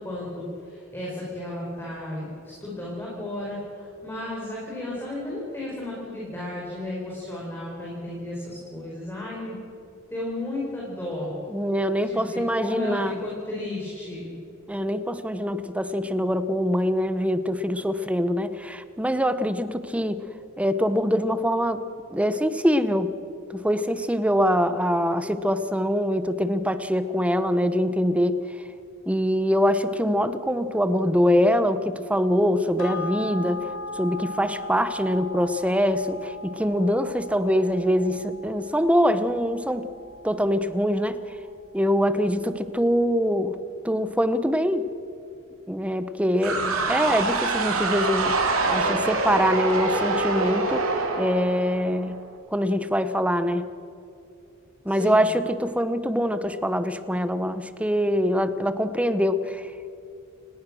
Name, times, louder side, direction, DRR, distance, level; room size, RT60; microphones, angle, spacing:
voice 1, 0.0-9.6 10.1-11.3 12.0-14.4 46.5-46.8 54.9-55.3, left 1 dB, 10° left, -5 dB, 5.2 m, -34 dB
voice 2, 11.5-13.2 14.7-20.2 20.6-21.8 22.1-23.1 23.5-28.4 29.1-33.7 34.0-39.9 40.2-41.2 41.7-43.6 43.8-44.9 45.7-50.9 51.2-52.2 52.5-53.7 54.8-59.7, equal, 5° right, 12 dB, 0.9 m, -24 dB
sound 1, 32.8-41.5 41.9-42.0, left 2 dB, 80° left, 3.8 m, -38 dB
sound 2, 46.4-52.2, right 3 dB, 80° right, 3.1 m, -25 dB
29.5 x 18.0 x 6.4 m, 2.5 s
head